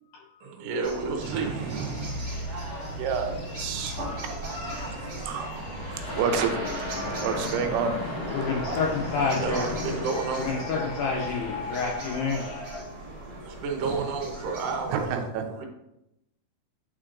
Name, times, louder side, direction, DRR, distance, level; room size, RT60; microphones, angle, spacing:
voice 1, 0.4-1.9 9.4-10.5 13.4-15.0 15.5-15.7, right 4 dB, 70° right, 1 dB, 2.3 m, -31 dB
sound 1, 0.8-15.1, right 1 dB, 35° right, 1.6 m, -39 dB
sound 2, 1.2-12.8, left 1 dB, 60° left, 1.6 m, -39 dB
voice 2, 1.2-2.3 3.0-4.3 5.0-6.5 7.2-8.0 13.8-14.0 14.9-15.7, right 6 dB, 90° right, 5 dB, 2.7 m, -30 dB
sound 3, 5.5-11.8, left 1 dB, 40° left, 1.7 m, -36 dB
voice 3, 8.3-9.7 10.4-12.4 12.8-13.3, left 5 dB, 75° left, -2 dB, 2.0 m, -29 dB
8.9 x 4.6 x 2.5 m, 0.86 s
omnidirectional pair, 4.6 m